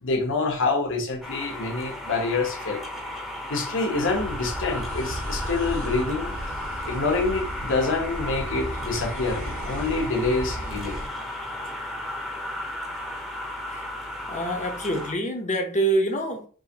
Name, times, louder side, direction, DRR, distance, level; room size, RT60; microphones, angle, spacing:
voice 1, 0.0-2.8 3.5-6.3 6.8-11.0, left 3 dB, 60° left, 3 dB, 1.1 m, -26 dB
sound 1, 1.2-15.1, left 1 dB, ahead, 0.9 m, -34 dB
sound 2, 3.9-11.1, equal, 45° right, 1.3 m, -35 dB
voice 2, 14.3-16.5, right 1 dB, 35° left, 3 dB, 0.9 m, -26 dB
4.9 x 3.1 x 2.9 m, 0.41 s
head